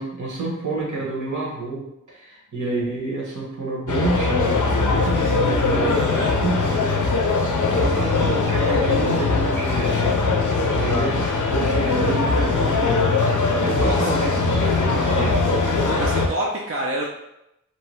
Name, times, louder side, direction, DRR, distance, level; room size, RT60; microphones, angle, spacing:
voice 1, 0.0-6.9 7.2-13.2 13.6-15.4, right 2 dB, 65° right, -4 dB, 1.0 m, -29 dB
sound 1, 3.9-16.3, left 3 dB, 70° left, 0.4 m, -21 dB
voice 2, 5.9-6.3 13.6-14.1 15.8-17.1, right 1 dB, 45° right, -2 dB, 0.4 m, -27 dB
2.7 x 2.2 x 3.1 m, 0.86 s
wide cardioid pair, 55°, 32 cm